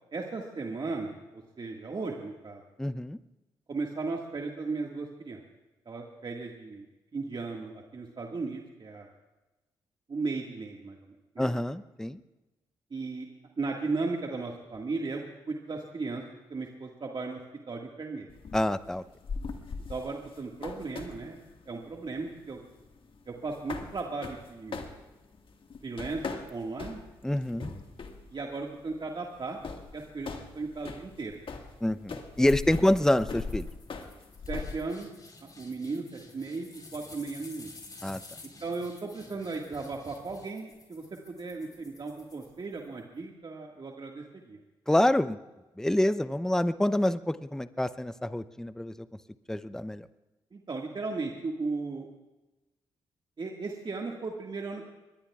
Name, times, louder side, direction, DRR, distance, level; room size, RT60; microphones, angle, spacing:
voice 1, 0.1-2.6 3.7-5.4 5.9-6.9 7.1-9.1 10.1-11.5 12.9-13.3 13.6-15.2 15.5-16.2 16.5-17.4 17.7-18.3 19.9-21.4 21.7-22.6 23.3-24.8 25.8-27.0 28.3-29.6 29.9-31.4 32.8-32.9 34.5-35.1 35.4-37.7 38.6-44.6 50.5-52.1 53.4-54.9, right 3 dB, 45° right, 1 dB, 1.8 m, -36 dB
voice 2, 2.8-3.2 11.4-12.2 18.5-19.0 27.2-27.7 31.8-33.7 38.0-38.2 44.9-45.4 45.8-49.1 49.5-50.1, left 1 dB, 5° left, 14 dB, 0.6 m, -27 dB
sound 1, 18.3-34.8, left 4 dB, 50° left, 1.7 m, -41 dB
sound 2, 32.5-43.0, left 3 dB, 35° left, 3.8 m, -52 dB
24.0 x 21.5 x 2.4 m, 1.1 s
hypercardioid pair, 45°, 11 cm